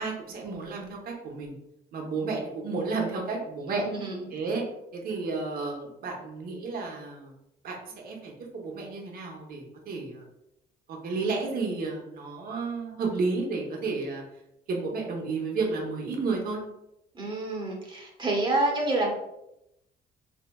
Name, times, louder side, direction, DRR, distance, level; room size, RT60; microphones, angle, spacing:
voice 1, 0.0-1.5 1.9-3.8 4.3-4.6 4.9-7.3 7.6-10.2 10.9-14.2 14.7-16.6, right 4 dB, 60° right, 0 dB, 0.9 m, -32 dB
voice 2, 3.7-4.3 17.1-19.1, right 2 dB, 30° right, -1 dB, 1.1 m, -28 dB
3.9 x 2.7 x 2.2 m, 0.85 s
cardioid pair, 110°, 17 cm